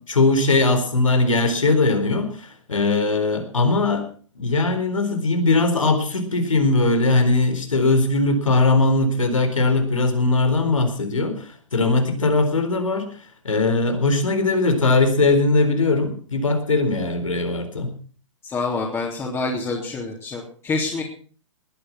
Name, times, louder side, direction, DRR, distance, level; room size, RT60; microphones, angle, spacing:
voice 1, 0.0-4.0 4.4-13.1 13.4-17.9, left 3 dB, 80° left, 7 dB, 4.2 m, -20 dB
voice 2, 18.4-21.0, left 3 dB, 15° left, -2 dB, 3.3 m, -27 dB
19.5 x 10.0 x 5.9 m, 0.42 s
figure-of-eight pair, 120°, 16 cm